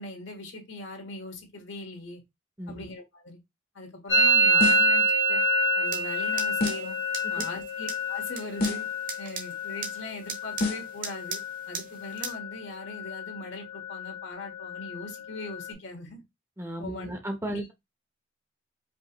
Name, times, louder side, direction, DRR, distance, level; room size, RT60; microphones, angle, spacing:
voice 1, 0.0-2.2 2.7-3.4 3.7-5.4 5.8-7.0 7.3-8.8 9.2-11.4 11.7-16.2 16.8-17.1 17.5-17.7, left 2 dB, 65° left, 1.5 m, -40 dB
Musical instrument, 4.1-11.7 12.0-12.6 12.8-13.4 13.7-15.7, right 1 dB, 85° left, 1.7 m, -27 dB
sound 1, 4.6-5.0 6.6-7.0 8.6-9.0 10.6-11.0, left 2 dB, 50° left, 1.0 m, -29 dB
sound 2, 5.9-12.3, right 5 dB, 45° right, 1.0 m, -40 dB
voice 2, 16.6-17.7, equal, 15° right, 0.7 m, -35 dB
5.1 x 2.8 x 3.0 m
head